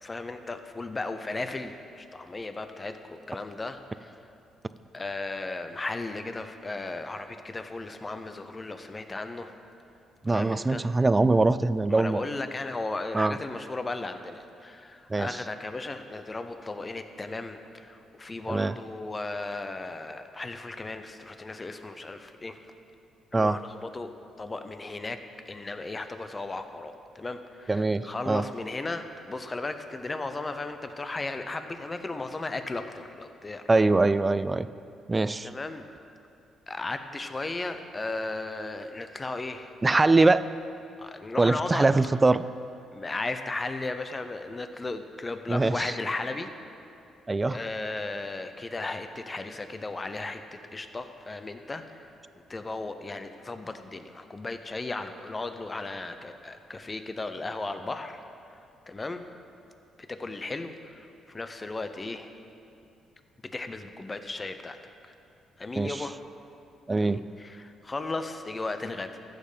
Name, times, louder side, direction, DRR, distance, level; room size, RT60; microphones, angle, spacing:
voice 1, 0.0-4.1 4.9-9.5 10.3-10.8 11.9-22.6 23.3-24.1 24.4-25.2 25.5-33.7 35.4-35.9 36.7-39.7 41.0-41.9 42.9-46.5 47.5-52.1 52.5-58.2 58.9-59.2 60.0-62.3 63.5-65.1 65.6-66.2 67.0-69.2, left 3 dB, 25° left, 8 dB, 0.7 m, -35 dB
voice 2, 10.2-12.2 13.1-13.4 15.1-15.4 18.5-18.7 23.3-23.6 27.7-28.4 33.7-34.7 35.1-35.5 39.8-40.4 41.4-42.4 45.5-45.9 47.3-47.6 65.8-66.0 66.9-67.2, right 3 dB, 20° right, 14 dB, 0.3 m, -23 dB
14.5 x 6.6 x 5.1 m, 2.6 s
cardioid pair, 90°, 0 cm